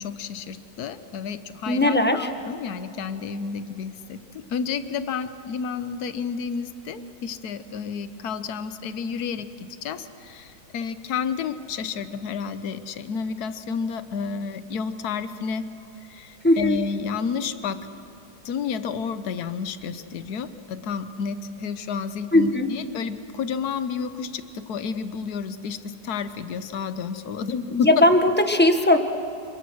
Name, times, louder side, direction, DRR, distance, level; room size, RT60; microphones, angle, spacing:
voice 1, 0.0-15.6 16.0-17.9 18.4-28.0, left 6 dB, 65° left, 11 dB, 1.5 m, -31 dB
voice 2, 1.7-2.3 16.4-16.8 22.3-22.7 27.7-29.0, left 1 dB, 5° left, 6 dB, 1.1 m, -18 dB
27.0 x 23.0 x 6.4 m, 2.9 s
omnidirectional pair, 1.9 m